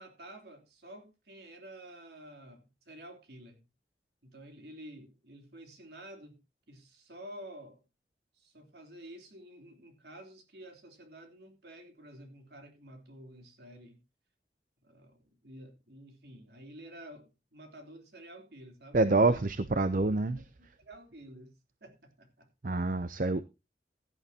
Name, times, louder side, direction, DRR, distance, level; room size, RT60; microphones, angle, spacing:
voice 1, 0.0-3.6 4.2-6.4 6.7-7.8 8.3-14.0 14.8-19.0 19.2-19.4 20.0-20.4 20.8-21.5 21.8-22.5, right 1 dB, 65° right, 3.4 m, -50 dB
voice 2, 18.9-20.7 22.6-23.4, right 3 dB, 45° right, 0.7 m, -27 dB
16.0 x 11.0 x 2.9 m
head